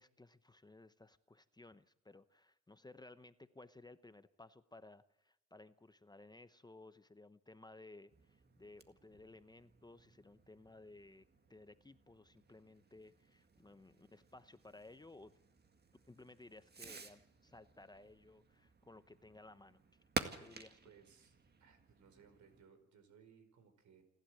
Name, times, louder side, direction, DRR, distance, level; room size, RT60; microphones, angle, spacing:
voice 1, 0.0-11.2 11.5-15.3 16.1-19.8 20.4-20.9, left 2 dB, 15° left, 12 dB, 0.8 m, -58 dB
Fireworks, 8.1-22.7, right 4 dB, 35° right, 1.9 m, -51 dB
voice 2, 20.8-24.0, right 7 dB, 70° right, 9 dB, 4.9 m, -64 dB
28.0 x 12.0 x 7.8 m, 0.94 s
cardioid pair, 90°, 30 cm